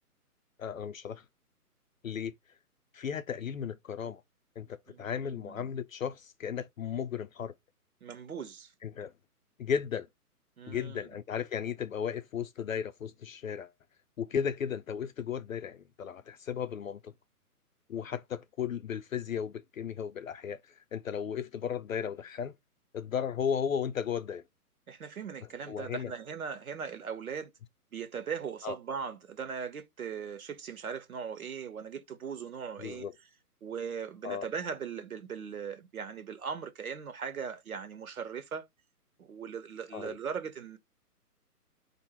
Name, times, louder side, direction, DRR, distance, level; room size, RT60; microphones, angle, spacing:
voice 1, 0.6-1.2 2.0-2.3 2.9-4.2 4.6-7.5 8.8-9.1 9.6-10.1 10.7-13.7 14.2-17.1 17.9-22.5 22.9-24.4 25.7-26.1 28.6-28.8 32.8-33.1 34.2-34.5 39.9-40.2, left 7 dB, 60° left, 0.6 m, -35 dB
voice 2, 4.9-5.7 8.0-8.7 10.6-11.0 24.9-27.5 27.9-33.1 33.6-38.7 39.2-40.8, right 6 dB, 65° right, 1.3 m, -39 dB
4.4 x 2.7 x 4.3 m
figure-of-eight pair, 140°, 47 cm